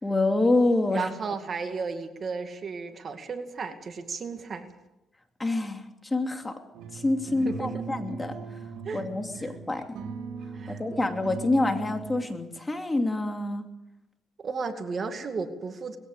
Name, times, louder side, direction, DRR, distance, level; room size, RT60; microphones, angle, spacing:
voice 1, 0.0-1.1 5.4-6.6 6.9-8.4 8.9-9.8 10.7-13.6, left 2 dB, 20° left, 5 dB, 2.9 m, -27 dB
voice 2, 0.9-4.7 7.3-7.8 8.8-9.0 9.4-9.5 10.5-11.1 14.4-16.0, right 4 dB, 45° right, 6 dB, 2.3 m, -34 dB
sound 1, 6.7-12.2, right 5 dB, 85° right, 3.4 m, -39 dB
21.0 x 16.5 x 8.3 m, 0.93 s
cardioid pair, 90°, 0 cm